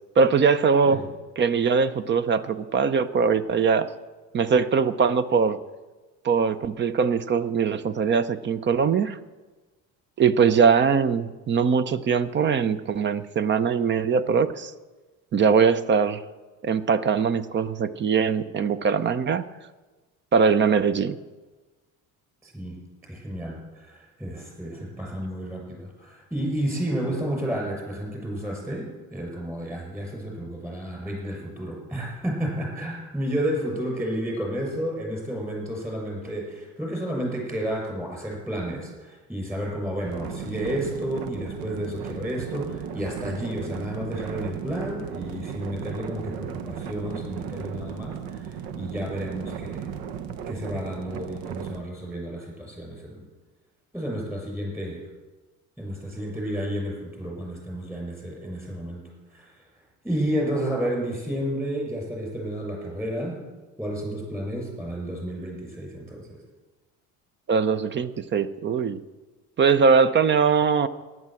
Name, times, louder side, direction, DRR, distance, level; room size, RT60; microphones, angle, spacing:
voice 1, 0.2-1.0 1.4-3.9 4.3-5.6 6.2-9.2 10.2-14.7 15.3-16.2 16.6-19.5 20.3-21.2 67.5-69.0 69.6-70.9, right 6 dB, 30° right, 15 dB, 0.7 m, -21 dB
voice 2, 22.4-22.8 23.1-49.9 50.5-53.2 53.9-55.0 55.8-59.7 60.0-63.4 63.8-66.4, right 1 dB, 5° right, -1 dB, 6.5 m, -31 dB
sound 1, 40.0-51.8, right 8 dB, 90° right, 1.0 m, -36 dB
14.0 x 11.0 x 7.7 m, 1.2 s
cardioid pair, 135°, 35 cm